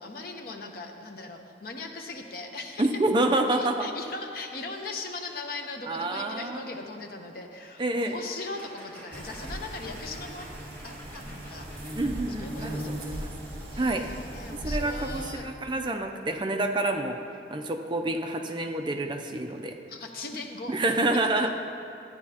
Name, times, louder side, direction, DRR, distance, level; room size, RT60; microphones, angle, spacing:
voice 1, 0.0-3.0 3.3-10.5 10.8-13.2 13.7-15.5 19.9-21.2, left 3 dB, 55° left, 3 dB, 0.8 m, -39 dB
voice 2, 2.8-3.9 5.9-6.6 7.8-8.1 12.0-13.3 13.8-14.1 14.6-17.2 17.5-19.8 20.7-21.5, right 2 dB, 25° right, 4 dB, 0.4 m, -28 dB
sound 1, 7.8-13.5, equal, 10° left, 1.6 m, -50 dB
sound 2, 9.1-15.3, right 1 dB, 55° right, 2.3 m, -37 dB
13.5 x 9.4 x 2.8 m, 2.8 s
head